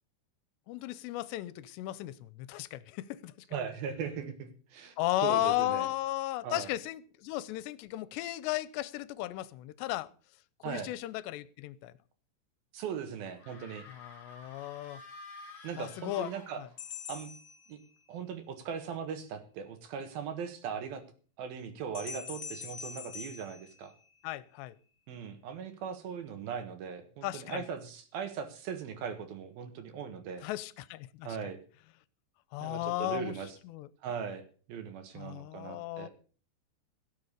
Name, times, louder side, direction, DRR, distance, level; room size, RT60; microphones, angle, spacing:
voice 1, 0.7-3.3 5.0-10.1 10.7-11.9 13.9-15.0 15.8-16.3 16.6-16.7 24.2-24.8 27.2-27.6 30.4-31.3 32.5-33.3 33.6-33.9 35.2-36.1, left 16 dB, 85° left, 2.9 m, -35 dB
voice 2, 3.5-4.9 5.2-5.9 6.4-6.7 10.6-10.9 12.7-13.9 15.6-16.6 17.1-17.3 17.7-17.8 18.1-21.0 21.4-23.9 25.1-30.4 31.2-31.6 32.6-33.6 34.0-34.4 34.7-36.1, right 7 dB, 65° right, 3.0 m, -39 dB
sound 1, 13.3-17.0, left 3 dB, 35° left, 4.0 m, -51 dB
sound 2, 16.8-18.3 21.9-24.5, left 6 dB, 55° left, 1.4 m, -45 dB
17.0 x 7.3 x 6.6 m
omnidirectional pair, 4.9 m